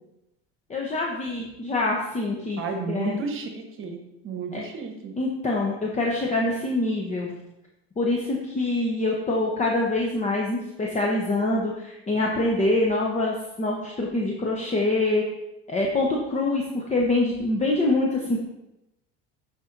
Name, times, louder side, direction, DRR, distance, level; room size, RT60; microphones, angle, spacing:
voice 1, 0.7-2.6 2.9-3.2 4.5-4.6 5.2-7.3 8.0-15.2 15.7-18.4, left 2 dB, 25° left, -1 dB, 1.0 m, -25 dB
voice 2, 2.6-5.1, right 4 dB, 45° right, 4 dB, 1.2 m, -32 dB
10.5 x 4.4 x 2.7 m, 0.90 s
supercardioid pair, 85°, 30 cm